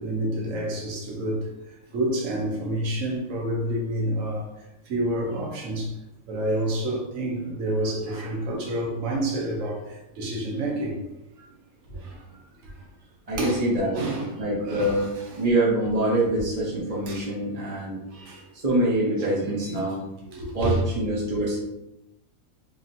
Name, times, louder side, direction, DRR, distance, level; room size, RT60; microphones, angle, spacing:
voice 1, 0.0-1.4 1.9-4.5 4.9-5.9 6.3-11.0 11.9-12.2 13.3-13.7 13.9-14.3 14.6-15.4 17.1-17.2 18.1-18.4 19.6-19.7 20.3-20.8, right 1 dB, 70° right, -1 dB, 1.2 m, -28 dB
voice 2, 13.3-14.0 14.3-15.1 15.4-18.0 18.6-20.0 20.5-21.6, right 1 dB, 35° right, -5 dB, 0.7 m, -25 dB
4.7 x 2.7 x 2.6 m, 0.90 s
omnidirectional pair, 1.4 m